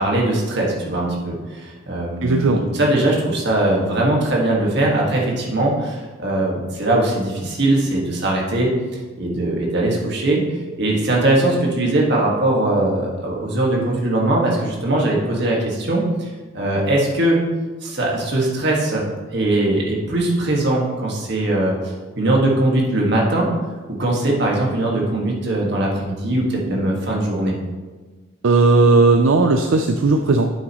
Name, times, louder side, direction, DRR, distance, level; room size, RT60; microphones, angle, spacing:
voice 1, 0.0-8.7 9.2-10.4 10.8-17.4 17.8-23.5 23.9-27.6, right 1 dB, 60° right, -2 dB, 1.9 m, -20 dB
voice 2, 2.2-2.6 28.4-30.6, right 3 dB, 75° right, 6 dB, 0.5 m, -15 dB
9.1 x 7.5 x 3.1 m, 1.3 s
head